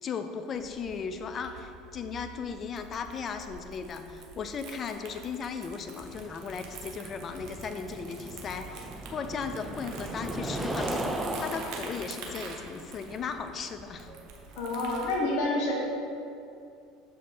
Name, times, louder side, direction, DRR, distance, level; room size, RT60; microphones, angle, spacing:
voice 1, 0.0-14.1, left 6 dB, 40° left, 8 dB, 0.6 m, -37 dB
Crumpling crinkling, 0.5-15.2, right 4 dB, 55° right, 1.1 m, -47 dB
sound 1, 6.0-14.9, right 1 dB, 10° right, 0.6 m, -37 dB
voice 2, 14.6-15.8, left 2 dB, 60° left, -3 dB, 1.5 m, -28 dB
7.0 x 5.0 x 4.3 m, 2.6 s
hypercardioid pair, 70°, 0 cm